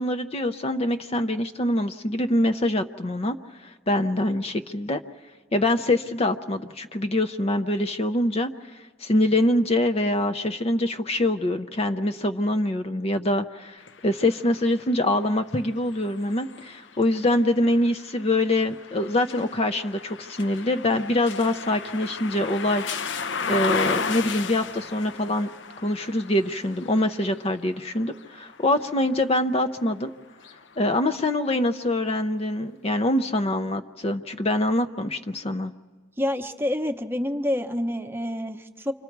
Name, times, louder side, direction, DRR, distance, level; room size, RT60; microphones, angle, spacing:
voice 1, 0.0-3.4 3.6-5.0 5.5-8.5 9.0-22.8 23.5-25.5 25.8-30.1 30.8-35.7, left 1 dB, 30° left, 8 dB, 0.6 m, -24 dB
sound 1, 13.8-29.7 30.3-31.5, left 5 dB, 75° left, 0.8 m, -35 dB
voice 2, 36.2-38.9, left 1 dB, 10° right, 6 dB, 0.9 m, -27 dB
29.5 x 25.5 x 4.6 m, 1.4 s
head